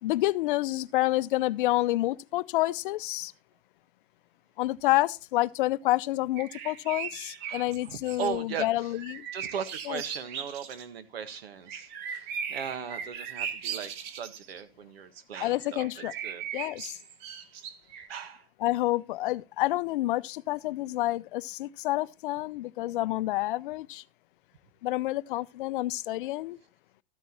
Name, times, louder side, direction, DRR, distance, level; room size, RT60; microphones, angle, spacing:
voice 1, 0.0-3.3 4.6-9.3 9.9-10.0 15.4-16.1 16.5-17.0 18.6-24.0 24.8-26.6, left 17 dB, 55° left, 0.6 m, -28 dB
sound 1, 6.4-8.3 8.9-10.8 11.7-14.6 15.6-18.1, right 7 dB, 50° right, 1.5 m, -38 dB
voice 2, 7.5-8.9 9.3-16.4 18.1-18.5, right 7 dB, 75° right, 1.7 m, -38 dB
13.5 x 9.4 x 3.0 m
hypercardioid pair, 125°, 30 cm